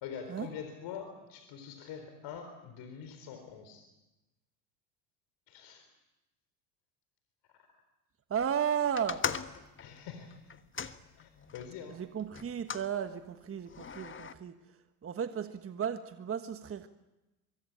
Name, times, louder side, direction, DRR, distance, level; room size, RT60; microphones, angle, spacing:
voice 1, 0.0-3.9 5.5-5.9 7.5-7.7 9.8-10.5 11.2-12.0, left 7 dB, 55° left, 7 dB, 4.2 m, -45 dB
voice 2, 8.3-9.2 11.9-14.6 15.0-16.9, right 8 dB, 25° right, 9 dB, 1.4 m, -34 dB
sound 1, 9.0-11.7 12.3-12.9 13.7-14.3, left 6 dB, 25° left, 1.4 m, -39 dB
24.5 x 23.0 x 8.9 m, 1.0 s
hypercardioid pair, 75°, 48 cm